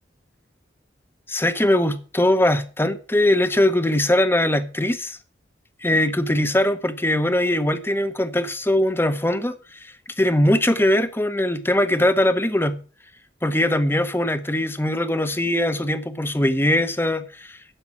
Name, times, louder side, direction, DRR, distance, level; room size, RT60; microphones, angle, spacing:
voice 1, 1.3-5.2 5.8-12.8 13.4-17.6, left 1 dB, 10° left, 0.9 m, -21 dB
10.0 x 7.4 x 7.3 m
head